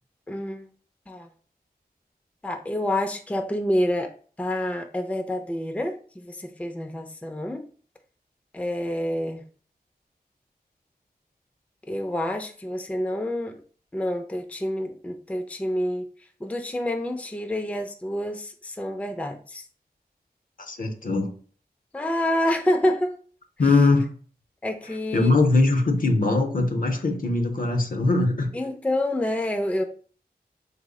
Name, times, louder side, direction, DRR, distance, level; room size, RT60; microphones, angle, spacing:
voice 1, 0.3-0.7 1.1-1.3 2.4-4.1 4.4-7.6 8.5-9.4 11.9-13.6 13.9-16.1 16.4-19.6 21.9-23.1 24.6-25.4 28.5-29.8, left 1 dB, 10° left, 4 dB, 0.4 m, -28 dB
voice 2, 20.7-21.3 23.6-24.0 25.1-28.5, left 3 dB, 55° left, 5 dB, 0.6 m, -21 dB
3.2 x 2.0 x 3.6 m, 0.43 s
cardioid pair, 40°, 17 cm